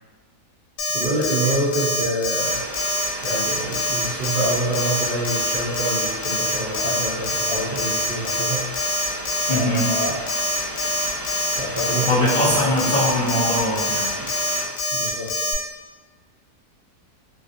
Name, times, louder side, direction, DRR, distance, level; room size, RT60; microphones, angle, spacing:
Alarm, 0.8-15.5, left 1 dB, 85° left, 1.2 m, -25 dB
voice 1, 0.9-2.6 3.2-8.7 9.5-10.2 11.6-13.0 14.2-14.3 14.9-15.3, right 1 dB, 60° right, -10 dB, 0.5 m, -26 dB
sound 1, 2.4-14.7, right 1 dB, 20° right, 0.6 m, -34 dB
voice 2, 9.5-9.8 11.9-14.1, left 1 dB, 60° left, -11 dB, 0.5 m, -22 dB
3.2 x 2.5 x 2.5 m, 1.3 s
omnidirectional pair, 1.7 m